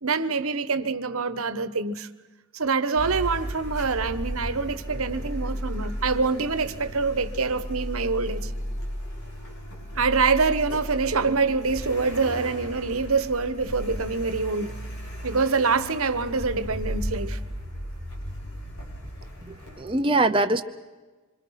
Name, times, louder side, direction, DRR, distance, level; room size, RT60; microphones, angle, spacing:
voice 1, 0.0-2.1 2.5-8.5 10.0-14.7 15.2-17.4, right 4 dB, 75° right, 1.2 m, -25 dB
Car, 2.9-19.8, equal, 80° left, 6.9 m, -35 dB
voice 2, 19.4-20.6, right 2 dB, 25° right, 0.7 m, -23 dB
26.0 x 25.5 x 5.9 m
head